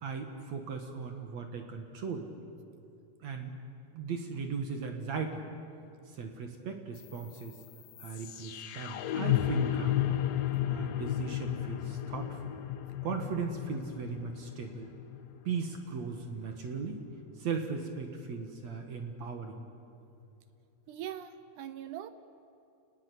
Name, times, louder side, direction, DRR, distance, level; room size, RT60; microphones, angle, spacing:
voice 1, 0.0-2.3 3.2-3.5 3.9-5.4 6.1-7.6 8.0-10.2 10.7-12.5 13.0-14.9 15.4-17.0 17.4-19.6, right 5 dB, 55° right, 4 dB, 2.5 m, -37 dB
sound 1, 7.0-17.0, left 12 dB, 70° left, 2.5 m, -34 dB
voice 2, 20.9-22.1, right 11 dB, 75° right, 12 dB, 1.9 m, -41 dB
28.0 x 20.0 x 8.5 m, 2.6 s
omnidirectional pair, 4.3 m